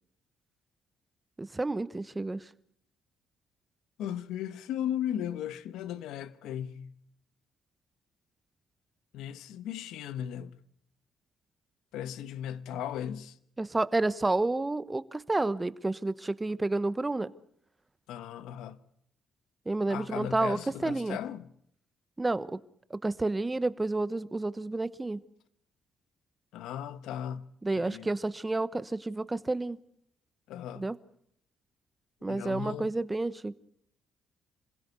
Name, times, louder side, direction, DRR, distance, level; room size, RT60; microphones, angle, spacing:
voice 1, 1.4-2.4 13.6-17.3 19.7-21.2 22.2-22.6 22.9-25.2 27.6-29.8 30.8-30.9 32.2-33.5, right 2 dB, 20° right, 1.0 m, -30 dB
voice 2, 4.0-7.0 9.1-10.6 11.9-13.4 18.1-18.8 19.9-21.5 26.5-27.5 27.7-28.1 30.5-30.9 32.3-32.9, left 10 dB, 90° left, 1.1 m, -36 dB
26.5 x 16.0 x 8.2 m
cardioid pair, 90°, 0 cm